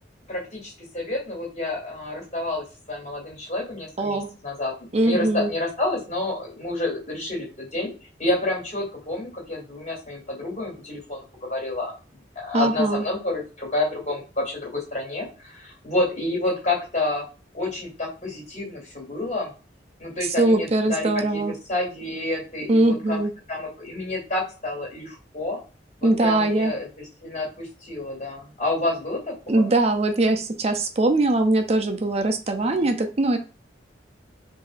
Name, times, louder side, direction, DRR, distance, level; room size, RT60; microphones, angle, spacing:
voice 1, 0.3-4.7 5.0-7.9 8.2-17.2 17.5-19.5 20.0-23.2 23.5-25.6 26.0-29.7 32.6-32.9, left 2 dB, 40° left, -3 dB, 2.2 m, -29 dB
voice 2, 4.0-4.3 4.9-5.5 12.5-13.0 20.4-21.5 22.7-23.3 26.0-26.7 29.5-33.4, right 2 dB, 35° right, 5 dB, 0.5 m, -21 dB
5.1 x 2.7 x 2.4 m, 0.34 s
head